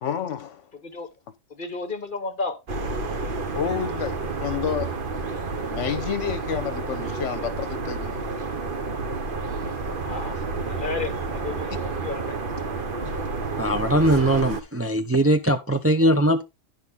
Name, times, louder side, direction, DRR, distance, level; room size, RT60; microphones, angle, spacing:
voice 1, 0.0-0.7 3.5-4.9 5.7-8.2 11.7-11.8, left 8 dB, 70° left, 1.2 m, -29 dB
voice 2, 1.6-2.6 10.0-10.4 10.7-12.3, left 4 dB, 40° left, 1.4 m, -32 dB
sound 1, 2.7-14.6, right 3 dB, 45° right, 1.1 m, -30 dB
voice 3, 13.6-16.4, right 1 dB, 20° right, 0.4 m, -20 dB
10.5 x 6.1 x 3.6 m
omnidirectional pair, 1.3 m